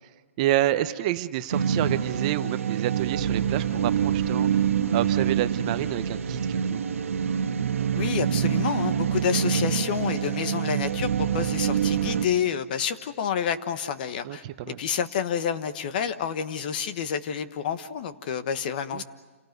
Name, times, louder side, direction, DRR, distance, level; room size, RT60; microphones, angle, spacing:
voice 1, 0.4-4.6 4.9-6.8 14.2-14.8 18.9-19.0, right 13 dB, 30° right, 11 dB, 0.8 m, -28 dB
sound 1, 1.5-12.2, right 8 dB, 75° right, 1.3 m, -26 dB
voice 2, 8.0-19.0, left 8 dB, 40° left, 11 dB, 1.3 m, -29 dB
28.5 x 18.0 x 9.4 m, 1.3 s
hypercardioid pair, 160°, 7 cm